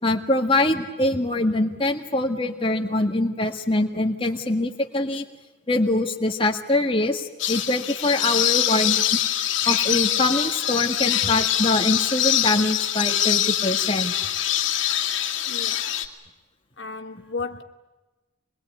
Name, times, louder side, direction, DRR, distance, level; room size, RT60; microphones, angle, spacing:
voice 1, 0.0-5.3 5.7-9.1 9.7-14.1, left 2 dB, 25° left, 1.8 m, -23 dB
sound 1, 7.4-16.1, left 11 dB, 85° left, 2.1 m, -24 dB
voice 2, 15.5-15.9 16.8-17.6, left 4 dB, 65° left, 1.1 m, -34 dB
25.5 x 21.5 x 9.3 m
head